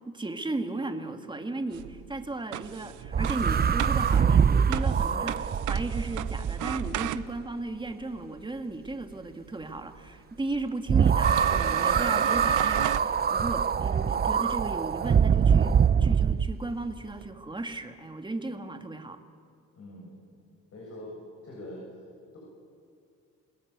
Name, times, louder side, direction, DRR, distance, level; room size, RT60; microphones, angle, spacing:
voice 1, 0.0-19.2, right 2 dB, 15° right, 6 dB, 2.2 m, -35 dB
sound 1, 1.7-7.6 9.8-9.9 10.5-10.6 11.2-13.1, right 14 dB, 85° right, 0.8 m, -35 dB
sound 2, 3.1-7.4 10.9-16.5, right 7 dB, 30° right, 0.7 m, -24 dB
voice 2, 19.8-20.2 20.7-21.2 21.4-21.8, left 1 dB, 55° left, -3 dB, 7.7 m, -43 dB
29.0 x 19.5 x 8.3 m, 2.3 s
cardioid pair, 90°, 30 cm